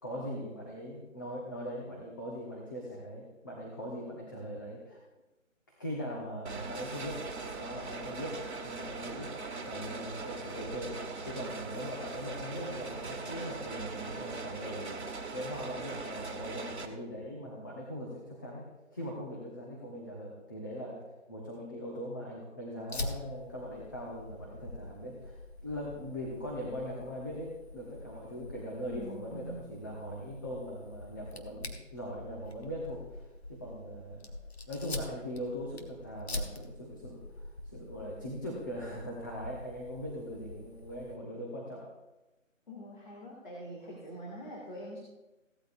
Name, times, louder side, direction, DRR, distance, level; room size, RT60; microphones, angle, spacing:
voice 1, 0.0-5.0 5.7-9.3 9.7-15.0 15.3-21.0 21.3-33.2 33.5-34.3 34.7-41.9, equal, 15° left, -4 dB, 1.1 m, -40 dB
sound 1, 6.5-16.9, right 3 dB, 55° right, 1.7 m, -40 dB
Fire, 22.9-41.2, left 2 dB, 50° left, 1.4 m, -45 dB
voice 2, 28.8-30.0 42.7-45.0, right 1 dB, 35° left, -4 dB, 2.4 m, -45 dB
17.0 x 13.0 x 2.6 m, 1.0 s
figure-of-eight pair, 170°, 39 cm